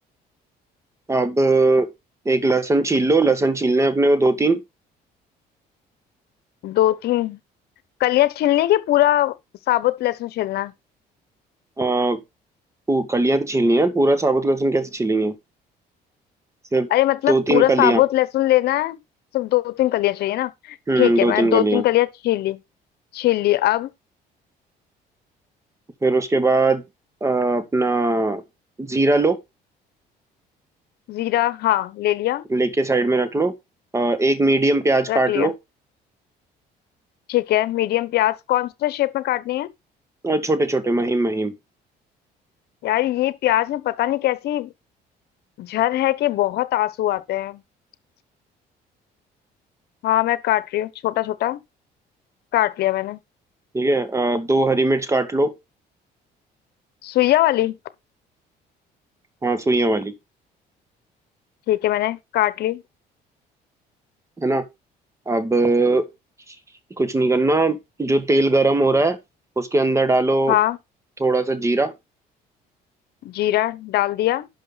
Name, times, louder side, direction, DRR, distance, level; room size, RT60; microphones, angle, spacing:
voice 1, 1.1-1.9 2.3-4.6 11.8-12.2 12.9-15.3 16.7-16.9 17.3-18.0 20.9-21.8 26.0-26.8 27.2-28.4 28.8-29.4 32.5-33.5 33.9-35.5 40.2-41.5 53.7-55.5 59.4-60.1 64.4-64.6 65.3-66.0 67.0-69.2 69.6-70.6 71.2-71.9, right 2 dB, 15° right, 1.9 m, -19 dB
voice 2, 6.6-7.4 8.0-9.3 9.7-10.7 16.9-19.0 19.3-22.6 23.1-23.9 31.1-32.4 35.1-35.5 37.3-39.7 42.8-44.7 45.6-47.6 50.0-51.6 52.5-53.2 57.0-57.8 61.7-62.8 70.5-70.8 73.2-74.5, left 15 dB, 70° left, 1.0 m, -21 dB
11.5 x 6.3 x 4.1 m
cardioid pair, 110°, 17 cm